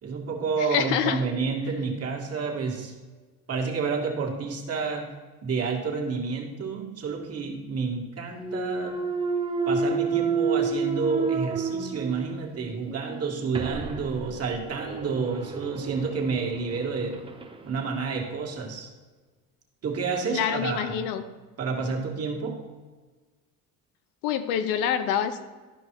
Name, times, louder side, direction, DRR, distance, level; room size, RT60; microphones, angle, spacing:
voice 1, 0.0-2.9 3.5-5.2 5.4-9.0 9.7-17.2 17.6-18.9 19.8-21.1 21.6-22.6, right 4 dB, 40° right, 0 dB, 2.1 m, -29 dB
voice 2, 0.6-1.2 20.3-21.3 24.2-25.4, left 9 dB, 80° left, 10 dB, 0.9 m, -26 dB
Thump thud, 8.4-12.4 12.9-17.6, right 5 dB, 15° right, 0.8 m, -30 dB
12.5 x 5.3 x 4.7 m, 1.3 s
cardioid pair, 105°, 36 cm